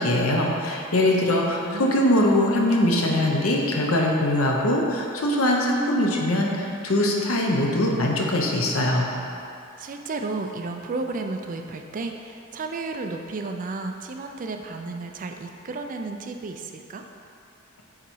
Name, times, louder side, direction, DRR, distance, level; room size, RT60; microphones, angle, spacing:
voice 1, 0.0-9.1, left 1 dB, 75° left, -1 dB, 0.9 m, -22 dB
voice 2, 1.3-1.9 9.8-17.0, right 3 dB, 40° right, 4 dB, 0.4 m, -33 dB
7.5 x 4.0 x 4.6 m, 2.6 s
head